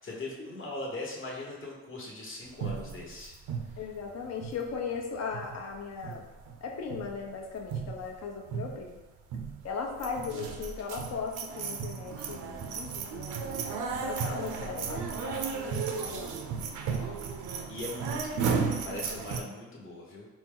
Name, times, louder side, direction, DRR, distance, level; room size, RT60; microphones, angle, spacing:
voice 1, 0.0-3.3 3.7-3.8 16.8-17.3 17.7-20.3, left 2 dB, 40° left, -2 dB, 1.1 m, -40 dB
sound 1, 2.6-5.0 5.3-5.7 6.0-6.6 6.9-7.2 7.6-8.2 8.5-8.9 9.3-9.7 10.0-19.4, right 6 dB, 85° right, 0.5 m, -34 dB
voice 2, 3.8-6.3 6.6-9.0 9.6-16.4, left 5 dB, 60° left, 1 dB, 0.8 m, -38 dB
4.3 x 2.1 x 3.7 m, 1.2 s
cardioid pair, 90°, 30 cm